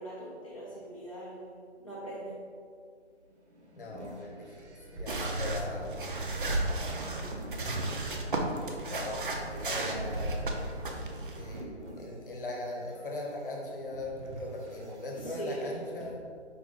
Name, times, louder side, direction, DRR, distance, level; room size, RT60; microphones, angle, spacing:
voice 1, 0.0-2.4 6.9-7.4 15.2-15.9, right 1 dB, 30° left, -9 dB, 0.4 m, -41 dB
sound 1, 3.1-8.2 8.7-15.4, right 1 dB, 75° right, 0.9 m, -48 dB
voice 2, 3.7-6.0 8.4-10.4 11.3-16.2, left 2 dB, 50° left, -1 dB, 0.9 m, -40 dB
sound 2, 5.1-11.6, right 2 dB, 50° right, 0.4 m, -34 dB
4.6 x 2.5 x 3.5 m, 2.1 s
hypercardioid pair, 165°, 35 cm